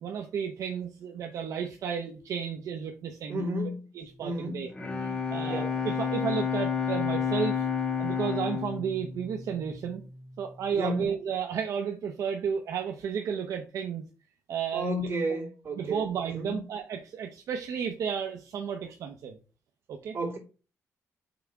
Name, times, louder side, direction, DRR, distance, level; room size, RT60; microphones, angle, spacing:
voice 1, 0.0-3.5 3.9-4.7 5.0-7.7 8.0-10.0 10.4-14.0 14.5-15.1 15.8-19.4 19.9-20.2, right 7 dB, 70° right, 0.8 m, -33 dB
voice 2, 3.3-3.7 4.2-4.6 5.4-5.8 10.7-11.0 14.7-16.0 16.3-16.5 20.1-20.4, right 1 dB, 45° right, 2.7 m, -31 dB
Bowed string instrument, 4.5-10.3, left 7 dB, 20° left, 1.1 m, -31 dB
5.9 x 3.6 x 4.6 m
wide cardioid pair, 160°, 6 cm